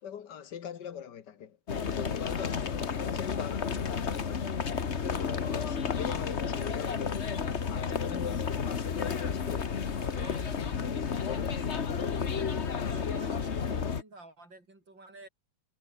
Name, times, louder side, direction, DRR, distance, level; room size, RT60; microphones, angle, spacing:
voice 1, 0.0-1.6 1.8-4.5 5.1-7.3 7.7-10.8 11.0-11.6, left 8 dB, 60° left, 1.9 m, -42 dB
sound 1, 1.7-14.0, left 6 dB, 40° left, 1.4 m, -32 dB
voice 2, 8.8-9.4 10.0-10.5 12.8-15.3, right 2 dB, 70° right, 8.5 m, -50 dB
omnidirectional pair, 2.1 m